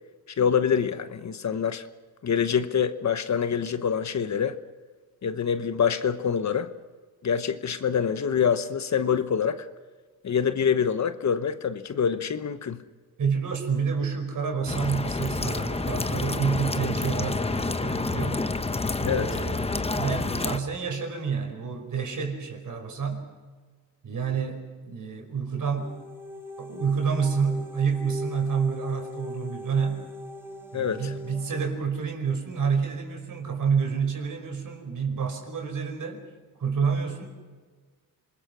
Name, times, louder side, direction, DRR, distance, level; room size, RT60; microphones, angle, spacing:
voice 1, 0.4-1.9 2.2-4.6 5.2-6.7 7.2-9.7 10.2-12.8 19.0-19.4 30.7-31.1, left 7 dB, 45° left, 1.1 m, -25 dB
voice 2, 13.2-18.4 19.0-19.7 19.9-23.3 24.0-25.9 26.6-30.0 30.7-36.2 36.6-37.3, right 6 dB, 55° right, 5.4 m, -28 dB
sound 1, 14.7-20.6, left 3 dB, 15° left, 1.0 m, -28 dB
sound 2, 25.6-31.7, left 2 dB, 5° right, 2.5 m, -40 dB
27.0 x 21.0 x 6.2 m
cardioid pair, 80°, 38 cm